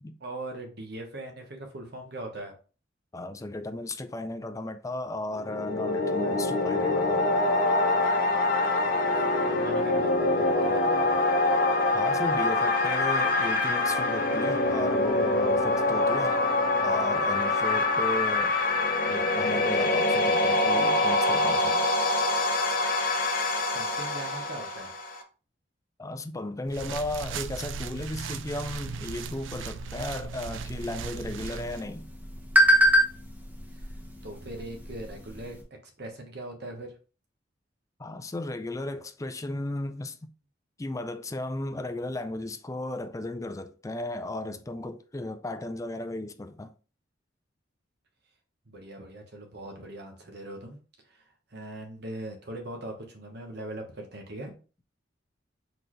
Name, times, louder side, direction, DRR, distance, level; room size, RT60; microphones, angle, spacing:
voice 1, 0.2-2.5 8.8-9.0 9.5-11.2 23.7-25.0 33.7-34.0 34.2-36.9 48.7-50.8 51.0-51.2 51.5-54.5, right 1 dB, 60° right, 1.2 m, -40 dB
voice 2, 3.1-7.4 11.9-16.4 16.8-18.6 19.1-21.9 26.0-32.1 38.0-40.3 40.8-46.7, left 2 dB, 15° left, 0.4 m, -35 dB
sound 1, 5.3-25.2, left 2 dB, 50° left, 0.8 m, -25 dB
sound 2, 26.7-31.8, right 5 dB, 85° right, 0.4 m, -37 dB
sound 3, 30.5-35.6, equal, 10° right, 0.9 m, -26 dB
4.4 x 3.9 x 3.1 m
head